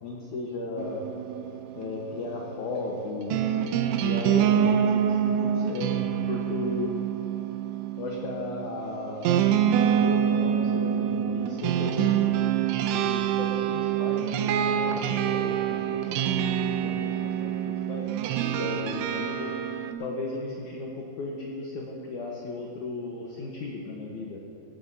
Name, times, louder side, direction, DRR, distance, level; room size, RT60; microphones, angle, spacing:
voice 1, 0.0-1.1 1.7-3.6 4.0-6.9 8.0-9.4 9.7-12.2 12.8-18.1 18.5-19.5 20.0-24.4, left 3 dB, 65° left, -2 dB, 2.1 m, -35 dB
sound 1, 0.8-19.9, right 9 dB, 85° right, 2.7 m, -26 dB
17.0 x 16.0 x 2.8 m, 2.8 s
omnidirectional pair, 4.8 m